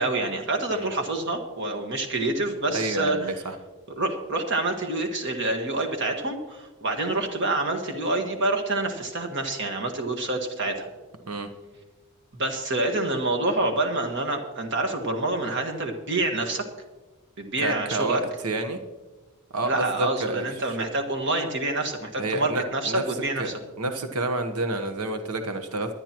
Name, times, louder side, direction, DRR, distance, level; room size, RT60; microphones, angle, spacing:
voice 1, 0.0-3.2 4.0-10.9 12.4-16.6 17.4-18.2 19.6-23.5, right 2 dB, 55° right, 4 dB, 1.6 m, -27 dB
voice 2, 2.7-3.6 11.2-11.5 17.6-18.8 19.5-20.9 22.2-23.5 23.8-26.0, right 2 dB, 85° right, 7 dB, 1.1 m, -29 dB
22.5 x 10.0 x 3.0 m, 1.2 s
head